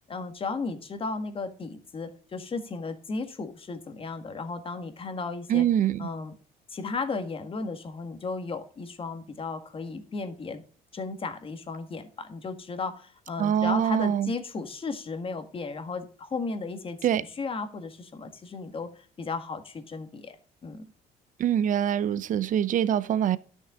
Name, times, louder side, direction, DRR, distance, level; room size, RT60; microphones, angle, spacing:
voice 1, 0.1-5.7 6.0-6.3 6.7-10.6 10.9-20.4 20.6-20.9, left 4 dB, 30° left, 1.7 m, -35 dB
voice 2, 5.5-6.1 13.4-14.3 17.0-17.2 21.4-23.4, right 10 dB, 50° right, 0.7 m, -24 dB
11.5 x 6.4 x 3.7 m
cardioid pair, 110°, 17 cm